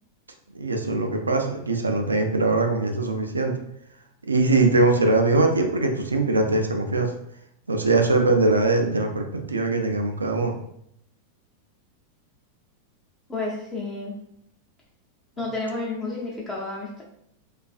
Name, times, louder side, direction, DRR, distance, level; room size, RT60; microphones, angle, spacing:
voice 1, 0.5-3.5 4.3-7.1 7.7-10.6, right 2 dB, 75° right, 4 dB, 0.3 m, -22 dB
voice 2, 13.3-14.2 15.4-17.0, left 2 dB, 15° left, -4 dB, 0.5 m, -31 dB
2.3 x 2.2 x 2.4 m, 0.72 s
figure-of-eight pair, 90°, 0 cm